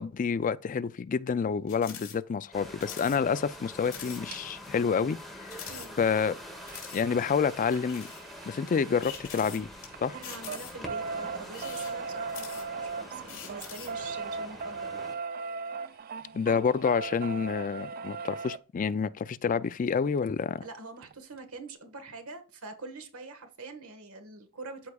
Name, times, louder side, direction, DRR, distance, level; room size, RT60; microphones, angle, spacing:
voice 1, 0.0-5.6 6.0-6.4 6.9-8.1 8.5-9.7 10.0-10.2 16.3-20.6, left 6 dB, 35° left, 0.3 m, -28 dB
sound 1, 1.7-2.2 2.4-2.5 2.8-3.2 3.5-3.6 3.8-4.2 4.7-4.8 5.5-6.3 6.7-7.0 7.7-8.3 9.0-9.9 10.2-10.9 11.4-12.9 13.3-14.0, left 8 dB, 65° left, 2.8 m, -44 dB
sound 2, 2.5-15.2, left 1 dB, ahead, 1.7 m, -45 dB
sound 3, 4.3-4.4 6.0-9.6 9.9-18.6 20.3-20.4 20.6-20.7 21.0-21.1, right 4 dB, 45° right, 0.4 m, -38 dB
voice 2, 10.1-15.0 20.6-24.9, right 3 dB, 70° right, 1.4 m, -44 dB
13.5 x 4.7 x 2.3 m
head